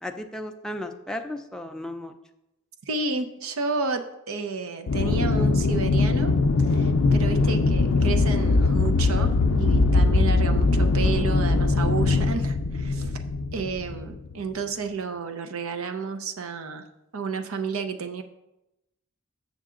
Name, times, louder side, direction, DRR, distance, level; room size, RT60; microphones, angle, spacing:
voice 1, 0.0-2.1, left 1 dB, 5° left, 4 dB, 0.4 m, -34 dB
voice 2, 2.9-6.3 6.7-13.2 13.5-16.8 17.1-18.2, right 4 dB, 75° right, 7 dB, 0.6 m, -31 dB
Aircraft, 4.9-14.3, left 3 dB, 70° left, 0.4 m, -21 dB
7.2 x 6.6 x 3.7 m, 0.91 s
head